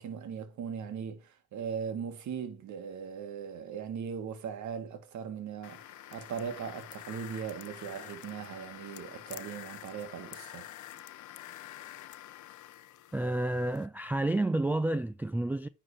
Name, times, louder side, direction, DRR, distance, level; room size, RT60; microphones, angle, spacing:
voice 1, 0.0-10.7, right 7 dB, 70° right, 1.6 m, -39 dB
sound 1, 5.6-13.9, left 13 dB, 75° left, 0.7 m, -47 dB
voice 2, 13.1-15.7, right 2 dB, 5° right, 0.3 m, -30 dB
9.8 x 3.8 x 4.8 m
cardioid pair, 90°, 30 cm